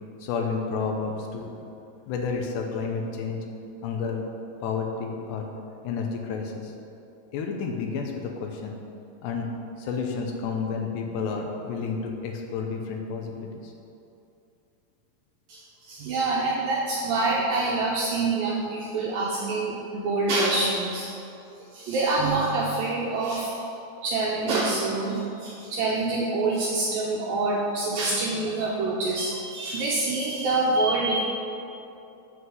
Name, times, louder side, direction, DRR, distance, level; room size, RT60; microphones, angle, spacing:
voice 1, 0.2-1.5 2.1-3.5 3.8-4.2 4.6-5.5 5.8-6.7 7.3-8.7 9.2-13.7, left 5 dB, 80° left, 2 dB, 2.9 m, -30 dB
voice 2, 15.5-21.1 21.6-23.6 24.0-31.2, right 3 dB, 75° right, -4 dB, 2.1 m, -26 dB
8.0 x 5.9 x 7.8 m, 2.7 s
omnidirectional pair, 5.2 m